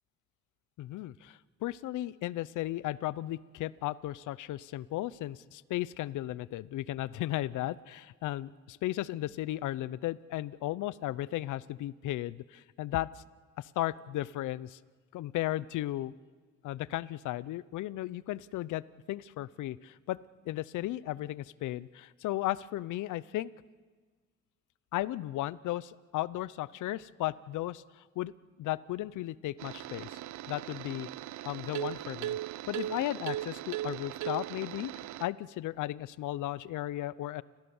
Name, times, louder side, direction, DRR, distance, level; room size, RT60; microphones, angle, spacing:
voice 1, 0.8-13.2 13.6-14.8 15.1-16.1 16.6-18.8 19.1-20.2 20.5-23.5 24.9-28.3 28.6-30.2 30.5-31.1 31.4-34.9 35.2-37.4, left 15 dB, 80° left, 20 dB, 0.7 m, -35 dB
sound 1, 29.6-35.2, right 14 dB, 70° right, 0.5 m, -38 dB
30.0 x 15.0 x 7.1 m, 1.5 s
cardioid pair, 90°, 30 cm